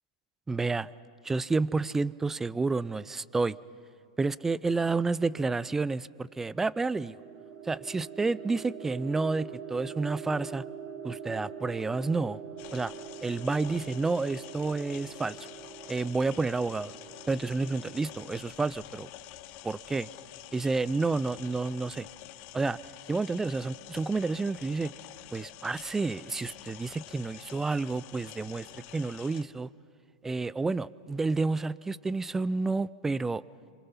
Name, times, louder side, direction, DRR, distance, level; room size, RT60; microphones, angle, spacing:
voice 1, 0.5-0.9 1.2-3.6 4.2-7.2 7.6-10.6 11.0-12.4 12.7-12.9 13.2-15.4 15.9-16.9 17.3-19.1 19.6-20.1 20.5-22.1 22.5-22.8 23.1-24.9 25.3-29.7 30.2-33.4, right 3 dB, 10° right, 20 dB, 0.5 m, -30 dB
sound 1, 6.5-18.3, right 7 dB, 50° right, 1.6 m, -44 dB
sound 2, 12.6-29.4, left 15 dB, 45° left, 1.0 m, -48 dB
27.0 x 26.0 x 5.7 m, 2.5 s
hypercardioid pair, 110°, 4 cm